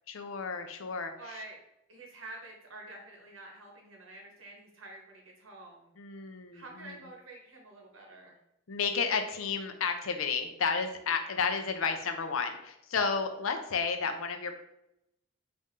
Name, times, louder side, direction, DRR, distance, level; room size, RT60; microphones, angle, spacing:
voice 1, 0.1-1.4 6.0-7.0 8.7-14.5, left 5 dB, 85° left, 6 dB, 0.6 m, -32 dB
voice 2, 1.2-1.6 1.9-5.9 6.5-8.4, right 2 dB, 75° right, 0 dB, 1.1 m, -48 dB
4.1 x 2.6 x 3.6 m, 0.83 s
head